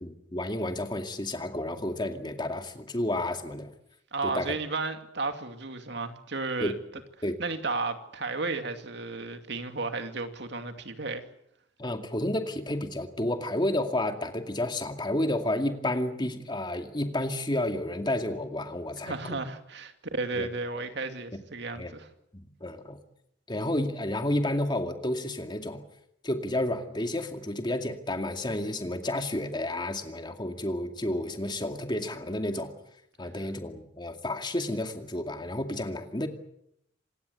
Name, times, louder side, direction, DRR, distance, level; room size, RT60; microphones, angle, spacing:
voice 1, 0.0-3.7 4.2-4.5 6.6-6.7 7.2-7.4 11.8-19.4 20.4-20.5 21.8-21.9 22.3-23.0 23.5-25.8 26.2-32.7 33.2-36.3, left 1 dB, 25° left, 2.3 m, -31 dB
voice 2, 4.1-6.7 7.4-11.2 19.1-22.1, right 3 dB, 65° right, 2.4 m, -33 dB
26.5 x 19.5 x 8.1 m
head